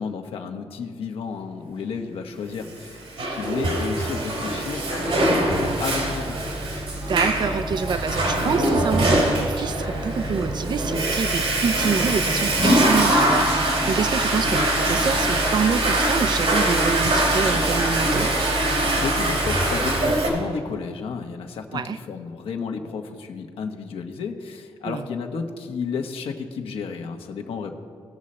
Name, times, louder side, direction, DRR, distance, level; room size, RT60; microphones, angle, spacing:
voice 1, 0.0-6.4 19.0-27.7, left 5 dB, 75° left, 4 dB, 1.1 m, -32 dB
Water / Toilet flush, 2.8-20.3, right 1 dB, 75° right, 3.3 m, -22 dB
voice 2, 7.1-18.3 21.7-22.0 24.8-25.1, right 6 dB, 50° right, 13 dB, 0.6 m, -27 dB
19.5 x 6.5 x 4.3 m, 2.4 s
cardioid pair, 90°, 10 cm